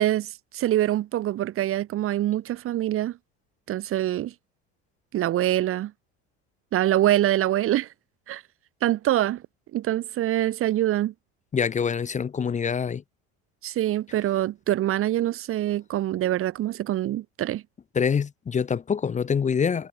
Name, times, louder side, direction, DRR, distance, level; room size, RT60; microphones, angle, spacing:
voice 1, 0.0-3.2 3.7-4.3 5.1-5.9 6.7-7.9 8.3-8.4 8.8-9.4 9.7-11.1 13.6-17.6, right 13 dB, 45° right, 1.1 m, -24 dB
voice 2, 11.5-13.0 17.9-19.9, left 6 dB, 25° left, 1.0 m, -25 dB
supercardioid pair, 120°, 32 cm